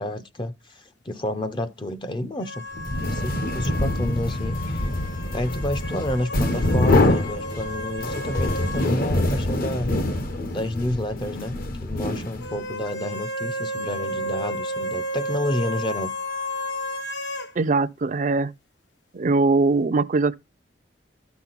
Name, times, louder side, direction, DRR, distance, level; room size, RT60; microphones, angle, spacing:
voice 1, 0.0-2.6 3.1-4.9 5.3-10.2 10.5-11.6 11.8-16.1, left 1 dB, 25° left, 0.6 m, -30 dB
sound 1, 2.4-9.0 9.3-9.4 12.4-17.5, equal, 75° left, 1.4 m, -33 dB
sound 2, 2.7-12.7, left 1 dB, 55° left, 1.0 m, -25 dB
voice 2, 17.6-18.5 19.1-20.4, right 3 dB, 45° right, 0.5 m, -21 dB
12.0 x 6.0 x 3.9 m
head